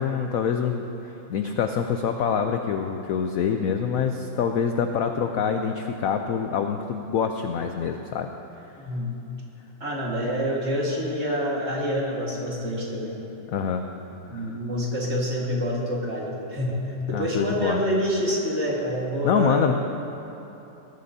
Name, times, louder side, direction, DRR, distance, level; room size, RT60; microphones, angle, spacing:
voice 1, 0.0-8.3 13.5-13.9 14.3-14.5 17.1-17.8 19.2-19.7, left 7 dB, 70° left, 5 dB, 0.8 m, -25 dB
voice 2, 8.8-9.1 9.8-13.2 14.3-19.7, equal, 40° right, -4 dB, 2.0 m, -27 dB
19.5 x 12.0 x 2.7 m, 3.0 s
omnidirectional pair, 2.0 m